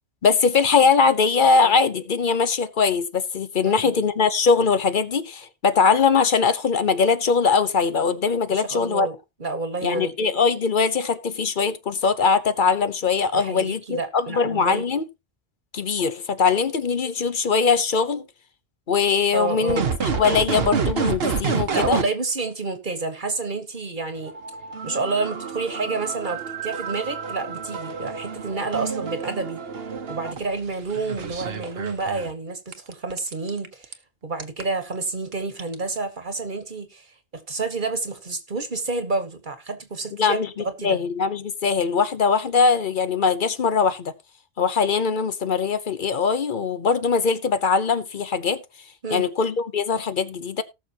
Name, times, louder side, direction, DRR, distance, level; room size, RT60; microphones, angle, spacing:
voice 1, 0.2-9.1 9.8-15.0 15.7-18.2 18.9-22.0 40.2-44.1 44.6-48.6 49.1-50.6, left 5 dB, 55° left, 0.9 m, -21 dB
voice 2, 3.6-4.0 8.5-10.1 13.3-14.9 19.3-19.9 21.7-24.3 24.8-29.6 30.1-33.9 34.2-37.1 37.3-40.4 40.8-41.0 49.0-49.3, right 3 dB, 50° right, 1.5 m, -29 dB
sound 1, 19.7-22.0 24.2-32.3 32.7-33.9 34.4-34.6 35.3-35.4 35.6-36.0, right 6 dB, 70° right, 1.2 m, -29 dB
18.5 x 6.3 x 2.9 m
omnidirectional pair, 1.1 m